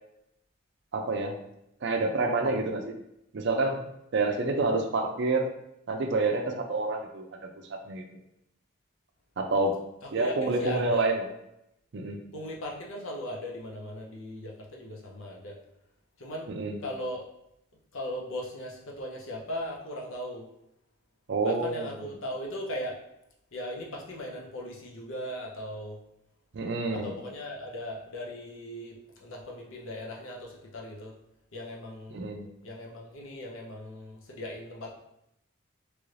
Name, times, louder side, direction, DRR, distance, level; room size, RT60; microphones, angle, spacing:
voice 1, 0.9-1.4 1.8-2.9 3.3-5.5 5.9-8.0 9.4-9.8 10.1-11.3 11.9-12.3 16.5-16.8 21.3-22.1 26.5-27.2 32.1-32.5, right 3 dB, 55° right, 3 dB, 0.4 m, -28 dB
voice 2, 10.1-11.1 12.3-15.6 16.2-16.5 16.8-17.2 17.9-20.5 21.4-23.0 23.5-26.0 26.9-31.1 31.5-32.3 32.6-35.0, left 1 dB, 70° left, -2 dB, 0.7 m, -38 dB
3.1 x 2.5 x 3.1 m, 0.82 s
head